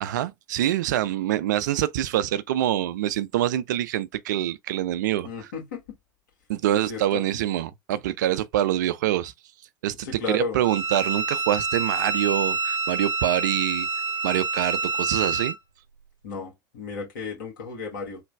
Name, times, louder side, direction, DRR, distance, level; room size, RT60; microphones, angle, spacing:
voice 1, 0.0-5.5 6.5-9.3 9.8-13.9 14.2-15.5, right 12 dB, 65° right, 0.4 m, -25 dB
voice 2, 5.2-5.8 6.9-7.2 10.0-10.6 16.2-18.2, left 4 dB, 70° left, 1.6 m, -33 dB
Bowed string instrument, 10.6-15.6, right 4 dB, 90° left, 1.2 m, -27 dB
3.3 x 2.2 x 3.3 m
figure-of-eight pair, 70°, 11 cm